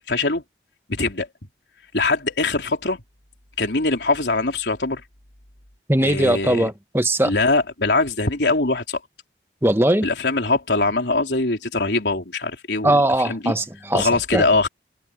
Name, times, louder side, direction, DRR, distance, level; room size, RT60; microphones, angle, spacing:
voice 1, 0.1-0.4 0.9-1.3 1.9-3.0 3.6-5.0 6.0-6.7 7.2-9.0 10.0-13.0 13.2-13.5 13.9-14.7, left 3 dB, 85° left, 3.8 m, -22 dB
voice 2, 5.9-7.3 9.6-10.1 12.8-14.4, right 1 dB, 15° right, 1.3 m, -20 dB
head